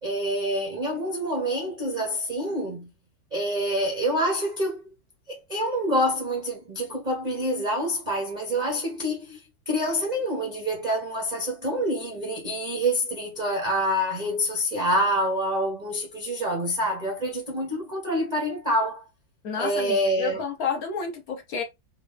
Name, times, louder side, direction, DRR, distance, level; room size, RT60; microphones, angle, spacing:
voice 1, 0.0-2.9 3.3-4.8 5.3-19.0 19.6-20.4, equal, 40° right, 0.6 m, -27 dB
voice 2, 19.4-21.6, left 6 dB, 60° left, 1.1 m, -30 dB
3.9 x 2.5 x 3.3 m
omnidirectional pair, 2.1 m